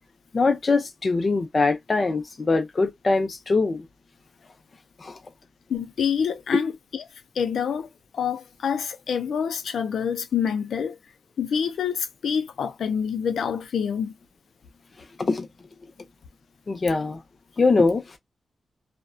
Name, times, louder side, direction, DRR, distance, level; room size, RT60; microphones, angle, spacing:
voice 1, 0.3-3.9 5.0-5.2 15.2-15.5 16.7-17.2 17.6-18.0, left 3 dB, 35° left, 0.5 m, -22 dB
voice 2, 5.7-7.1 7.4-11.0 11.4-14.1, left 7 dB, 85° left, 0.4 m, -27 dB
2.5 x 2.1 x 2.3 m
wide cardioid pair, 135°, 0 cm